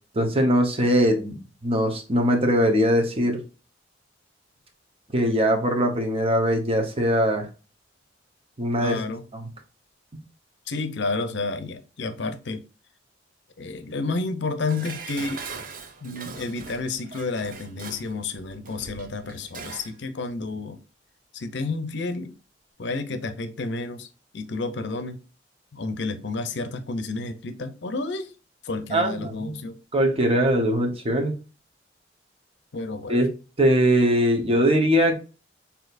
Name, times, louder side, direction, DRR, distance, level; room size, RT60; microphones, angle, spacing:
voice 1, 0.1-3.4 5.1-7.5 8.6-9.0 9.3-9.5 28.9-29.5 29.9-31.3 33.1-33.3 33.6-35.1, equal, 35° right, 0.9 m, -21 dB
voice 2, 8.8-9.2 10.7-12.6 13.6-15.4 16.0-20.8 21.3-22.3 22.8-25.2 25.7-28.3 28.6-29.8 32.7-33.2, left 3 dB, 70° left, 0.6 m, -30 dB
Dishes pots and pans, 14.7-20.0 20.3-20.4, right 5 dB, 50° right, 0.6 m, -41 dB
6.1 x 2.8 x 2.5 m
head